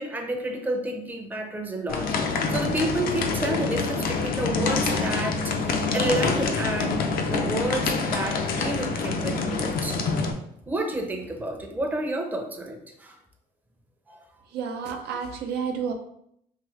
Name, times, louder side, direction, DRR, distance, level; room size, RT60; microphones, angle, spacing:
voice 1, 0.0-10.0 10.7-13.2 14.1-14.2, right 1 dB, 10° right, 2 dB, 0.6 m, -30 dB
sound 1, 1.9-10.3, left 4 dB, 60° left, 0.5 m, -26 dB
voice 2, 14.5-15.9, right 6 dB, 75° right, 2 dB, 0.6 m, -30 dB
3.7 x 2.7 x 3.1 m, 0.73 s
cardioid pair, 110°, 17 cm